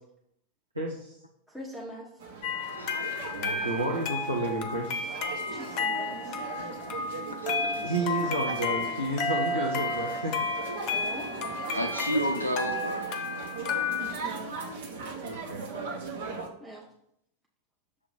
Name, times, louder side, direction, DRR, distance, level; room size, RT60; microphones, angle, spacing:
voice 1, 0.7-1.2 3.3-5.1 7.8-10.3 15.2-15.7, right 1 dB, 85° right, -2 dB, 0.9 m, -31 dB
voice 2, 1.5-2.1 5.5-6.4 10.9-11.4 16.6-16.9, equal, 5° right, -4 dB, 0.8 m, -42 dB
sound 1, 2.2-16.5, right 4 dB, 60° right, 1.0 m, -39 dB
sound 2, 2.4-14.1, left 3 dB, 40° left, 0.7 m, -32 dB
voice 3, 2.7-3.2 7.1-7.9 11.7-13.1, equal, 90° left, 3 dB, 0.4 m, -32 dB
6.6 x 2.9 x 5.4 m, 0.76 s
figure-of-eight pair, 90°, 0 cm